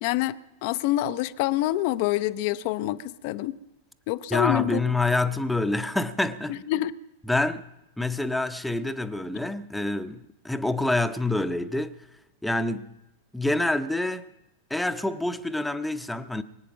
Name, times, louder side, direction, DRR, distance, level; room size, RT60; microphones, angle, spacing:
voice 1, 0.0-3.6 4.1-4.8 6.5-6.9, left 15 dB, 45° left, 0.6 m, -26 dB
voice 2, 4.3-6.6 7.3-7.6 8.0-12.0 12.4-12.9 13.3-14.3 14.7-16.4, left 2 dB, 5° left, 0.8 m, -27 dB
23.5 x 9.0 x 6.1 m
figure-of-eight pair, 90°, 0 cm